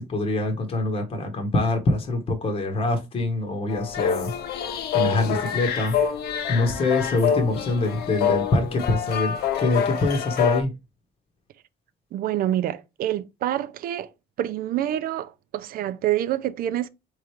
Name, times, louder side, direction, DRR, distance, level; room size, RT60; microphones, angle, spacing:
voice 1, 0.0-4.3 4.9-6.1 6.5-10.7, left 2 dB, 35° left, 1.0 m, -24 dB
sound 1, 3.7-10.6, left 8 dB, 70° left, 0.7 m, -26 dB
voice 2, 12.1-14.1 14.4-16.9, right 12 dB, 60° right, 0.5 m, -27 dB
3.7 x 3.2 x 4.4 m
cardioid pair, 110°, 17 cm